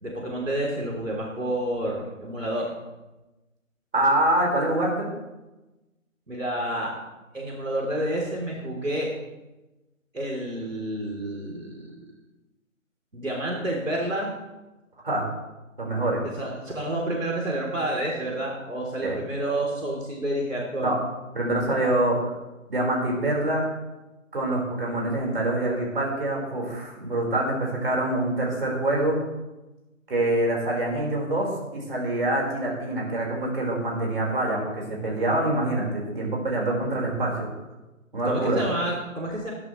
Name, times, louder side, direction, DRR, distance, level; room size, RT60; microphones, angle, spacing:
voice 1, 0.0-2.7 6.3-6.9 7.3-9.1 10.1-12.0 13.1-14.3 16.3-20.9 38.2-39.5, right 1 dB, 70° right, -1 dB, 3.6 m, -29 dB
voice 2, 3.9-5.1 15.0-15.3 15.8-16.2 19.0-19.2 20.8-21.0 21.3-22.3 22.7-23.6 24.3-29.2 30.1-37.5 38.1-38.6, right 1 dB, 45° right, -2 dB, 4.9 m, -25 dB
20.5 x 12.0 x 3.3 m, 1.0 s
figure-of-eight pair, 155°, 41 cm